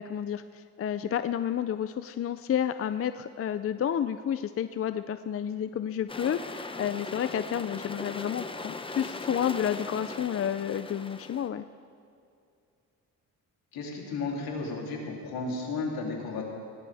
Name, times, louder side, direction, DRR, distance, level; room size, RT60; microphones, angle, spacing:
voice 1, 0.0-11.6, left 9 dB, 40° left, 11 dB, 0.5 m, -30 dB
sound 1, 6.1-11.5, left 3 dB, 15° left, 0.9 m, -39 dB
voice 2, 13.7-16.4, left 3 dB, 80° left, -2 dB, 3.3 m, -33 dB
20.5 x 18.0 x 3.5 m, 2.4 s
cardioid pair, 85°, 36 cm